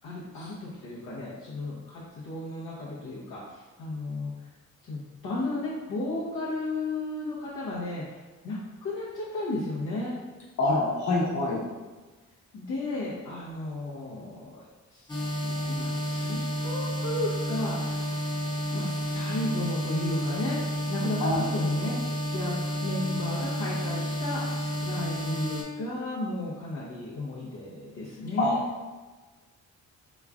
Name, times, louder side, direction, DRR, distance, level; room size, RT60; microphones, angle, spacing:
voice 1, 0.0-4.3 4.8-8.2 8.4-10.1 12.5-14.6 14.9-15.1 15.4-18.1 18.7-20.6 20.9-22.0 22.3-22.5 22.8-24.4 24.8-28.6, left 2 dB, 80° left, -8 dB, 0.8 m, -34 dB
voice 2, 10.6-11.6 21.2-21.4 28.4-28.5, left 2 dB, 60° left, -5 dB, 1.2 m, -25 dB
sound 1, 15.1-25.6, equal, 15° left, 0.7 m, -31 dB
3.4 x 3.0 x 2.4 m, 1.3 s
cardioid pair, 75°, 31 cm